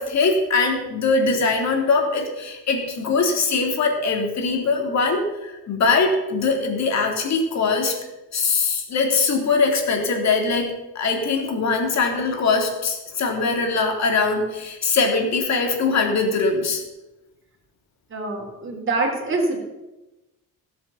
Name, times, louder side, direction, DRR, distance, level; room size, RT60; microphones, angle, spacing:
voice 1, 0.0-7.9 8.3-16.8, left 4 dB, 50° left, 2 dB, 3.1 m, -22 dB
voice 2, 18.1-19.6, right 3 dB, 35° right, -1 dB, 3.6 m, -25 dB
17.0 x 8.1 x 7.1 m, 1.0 s
cardioid pair, 170°, 36 cm